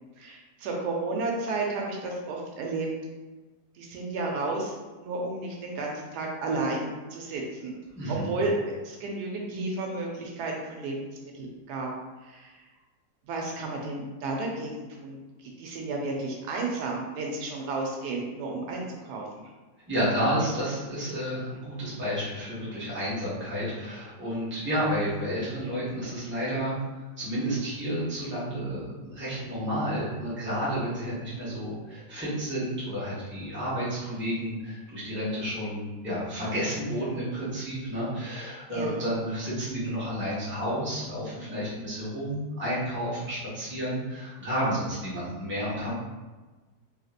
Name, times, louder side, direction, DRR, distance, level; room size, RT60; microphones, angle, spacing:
voice 1, 0.2-2.9 3.8-4.7 5.0-7.7 8.1-11.9 12.2-12.5 13.3-15.2 15.6-19.2 38.7-39.0, right 2 dB, 80° right, 0 dB, 1.1 m, -32 dB
voice 2, 7.9-8.3 19.9-26.8 27.2-45.9, equal, 10° right, -10 dB, 0.9 m, -31 dB
3.1 x 2.7 x 2.4 m, 1.2 s
omnidirectional pair, 1.7 m